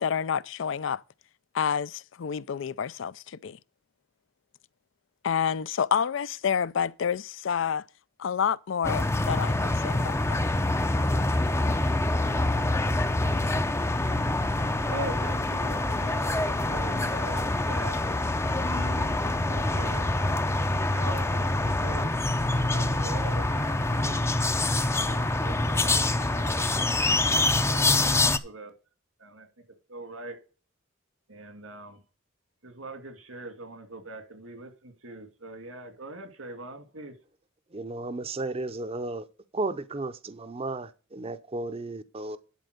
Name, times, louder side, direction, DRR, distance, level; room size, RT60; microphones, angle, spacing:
voice 1, 0.0-1.0 1.5-3.6 5.2-7.8 8.2-10.4, left 7 dB, 65° left, 0.4 m, -29 dB
sound 1, 8.8-28.4, left 2 dB, 15° left, 0.5 m, -26 dB
voice 2, 14.9-18.0 18.5-20.1 20.9-22.2 22.7-24.3 24.6-27.0 27.6-28.7 29.2-29.5 29.9-30.4 31.3-32.0 32.6-37.2, right 2 dB, 90° right, 2.4 m, -41 dB
voice 3, 37.7-39.3 39.5-42.4, right 2 dB, 30° right, 0.6 m, -34 dB
11.5 x 4.4 x 6.6 m
head